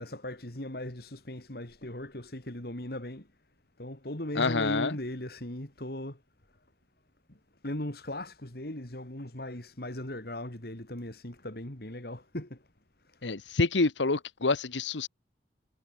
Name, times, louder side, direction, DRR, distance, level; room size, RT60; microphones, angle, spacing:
voice 1, 0.0-3.3 3.8-6.2 7.6-12.6 13.1-13.3, left 1 dB, 55° left, 3.0 m, -38 dB
voice 2, 4.3-5.0 13.2-15.1, left 3 dB, 90° left, 1.2 m, -27 dB
head